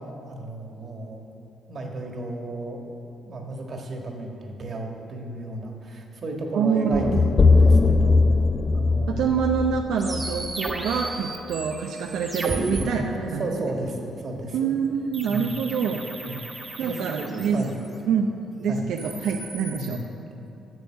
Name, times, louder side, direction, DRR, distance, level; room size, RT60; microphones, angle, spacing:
voice 1, 0.3-1.2 1.7-2.9 3.2-8.3 8.7-9.4 13.1-14.7 15.3-15.5 16.2-16.4 16.8-17.8 18.7-18.9 19.7-20.1, right 2 dB, 50° right, 2 dB, 1.5 m, -33 dB
voice 2, 6.5-7.3 9.1-13.5 14.5-16.0 16.8-17.6 18.1-18.3 18.6-20.0, right 6 dB, 80° right, 2 dB, 0.5 m, -26 dB
sound 1, 6.9-11.1, left 3 dB, 35° left, 0.4 m, -20 dB
sound 2, 10.0-12.8 15.1-17.9 18.8-20.0, right 2 dB, 20° right, 1.3 m, -34 dB
8.1 x 6.8 x 7.3 m, 2.9 s
cardioid pair, 90°, 0 cm